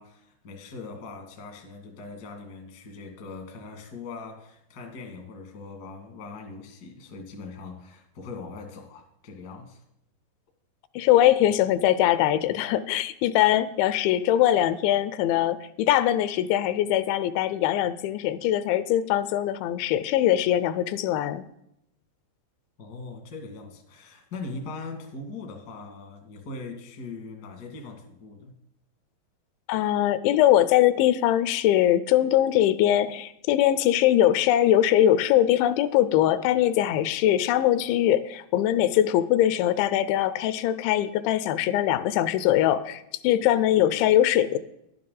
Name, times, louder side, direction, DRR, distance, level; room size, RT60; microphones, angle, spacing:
voice 1, 0.0-9.8 22.8-28.5, left 3 dB, 70° left, 2 dB, 0.9 m, -41 dB
voice 2, 11.0-21.4 29.7-44.6, left 12 dB, 85° left, 14 dB, 2.9 m, -22 dB
12.0 x 11.0 x 3.8 m, 0.79 s
omnidirectional pair, 5.2 m